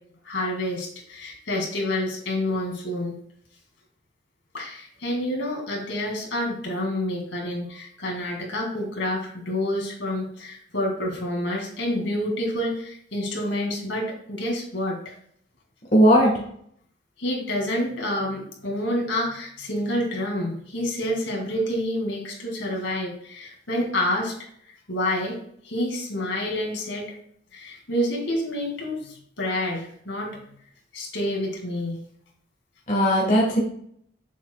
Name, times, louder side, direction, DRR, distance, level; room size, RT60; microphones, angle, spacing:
voice 1, 0.2-3.2 4.5-15.1 17.2-24.5 24.9-25.4 25.6-27.1 27.5-30.3 30.9-32.0, left 1 dB, 75° left, -1 dB, 2.3 m, -28 dB
voice 2, 15.9-16.3 32.9-33.6, equal, 40° left, -3 dB, 1.4 m, -17 dB
7.2 x 7.0 x 2.3 m, 0.65 s
head